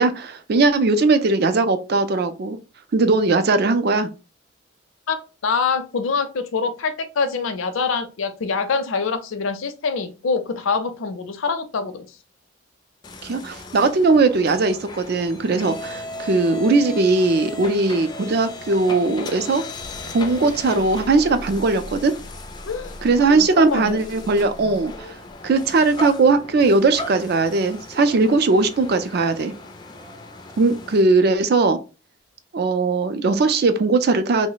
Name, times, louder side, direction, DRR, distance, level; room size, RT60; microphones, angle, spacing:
voice 1, 0.0-2.6 2.9-4.1 13.2-19.6 20.1-22.1 23.0-25.1 25.4-29.5 30.6-31.8 32.5-34.5, right 3 dB, 50° right, 0.4 m, -19 dB
voice 2, 5.1-12.1 22.6-22.9 23.3-24.0, left 5 dB, 80° left, 0.5 m, -25 dB
sound 1, 13.0-31.0, left 2 dB, 20° left, 0.3 m, -36 dB
3.0 x 2.0 x 3.9 m
head